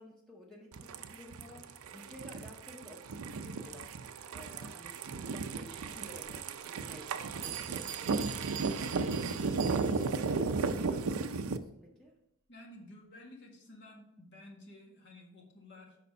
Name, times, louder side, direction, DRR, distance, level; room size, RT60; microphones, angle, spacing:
voice 1, 0.0-4.0 4.3-8.3 8.6-9.3 10.4-12.2, left 1 dB, ahead, -3 dB, 0.8 m, -53 dB
sound 1, 0.7-11.6, right 4 dB, 90° right, 0.5 m, -35 dB
Bell, 6.2-6.3 7.0-7.1 7.4-10.2, right 10 dB, 60° right, 0.8 m, -44 dB
voice 2, 12.5-16.0, left 1 dB, 55° left, 0 dB, 1.7 m, -53 dB
6.8 x 5.1 x 5.3 m, 0.82 s
head